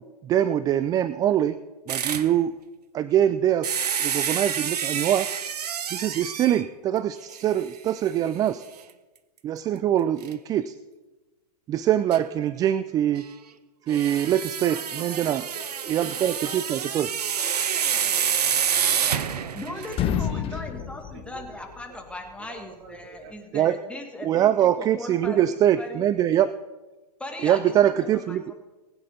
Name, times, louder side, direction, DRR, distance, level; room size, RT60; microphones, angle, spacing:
voice 1, 0.2-1.6 1.9-2.5 2.9-5.3 5.9-8.6 9.4-10.7 11.7-13.2 13.9-15.4 15.9-17.1 23.5-23.8 24.2-26.5 27.4-28.5, right 11 dB, 20° right, 15 dB, 0.3 m, -23 dB
sound 1, 1.9-2.3 3.6-6.7 7.3-7.4 7.9-8.0 10.2-10.3 12.1-12.2 13.9-20.1, right 8 dB, 75° right, 0.9 m, -28 dB
voice 2, 14.7-15.7 16.0-18.3 18.7-22.0 22.4-23.3, right 5 dB, 50° right, 4 dB, 2.3 m, -46 dB
sound 2, 18.7-19.6 19.9-22.0, left 9 dB, 25° left, 1.1 m, -30 dB
voice 3, 19.5-26.1 27.2-28.5, left 2 dB, 5° left, 2 dB, 2.0 m, -39 dB
20.0 x 9.0 x 4.0 m, 1.2 s
hypercardioid pair, 110°, 20 cm